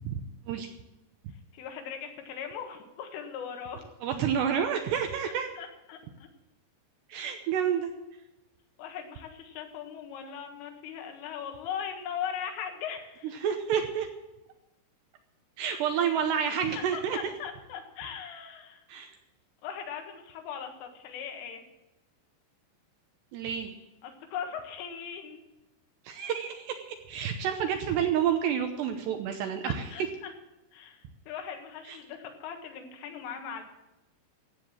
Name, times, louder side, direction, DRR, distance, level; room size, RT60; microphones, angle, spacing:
voice 1, 1.5-3.8 5.6-6.3 8.8-13.4 16.0-16.1 16.6-18.8 19.6-21.6 24.0-25.4 29.6-30.3 30.7-33.6, left 7 dB, 80° left, 4 dB, 4.1 m, -39 dB
voice 2, 4.0-5.5 7.1-7.9 13.4-14.1 15.6-17.2 18.9-19.1 23.3-23.7 26.1-29.9 31.9-32.0, right 8 dB, 75° right, 5 dB, 2.6 m, -29 dB
15.5 x 8.2 x 7.3 m, 1.0 s
omnidirectional pair, 5.7 m